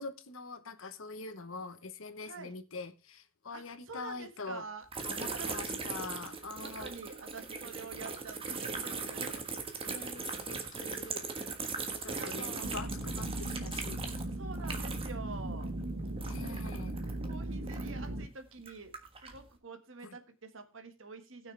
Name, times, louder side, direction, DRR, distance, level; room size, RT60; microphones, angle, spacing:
voice 1, 0.0-4.7 5.0-6.9 9.8-11.2 12.0-14.0 16.3-17.0 20.0-20.2, left 3 dB, 75° left, 1.0 m, -44 dB
voice 2, 2.2-2.5 3.5-5.5 6.6-9.4 10.0-10.1 12.0-12.8 14.4-15.7 16.4-16.6 17.2-18.9 19.2-21.5, right 4 dB, 70° right, 1.7 m, -47 dB
sound 1, 4.9-15.3 15.5-18.1 18.6-19.4, right 4 dB, 25° right, 1.4 m, -39 dB
sound 2, 12.6-18.3, right 1 dB, 85° right, 1.0 m, -38 dB
19.0 x 6.3 x 3.3 m
head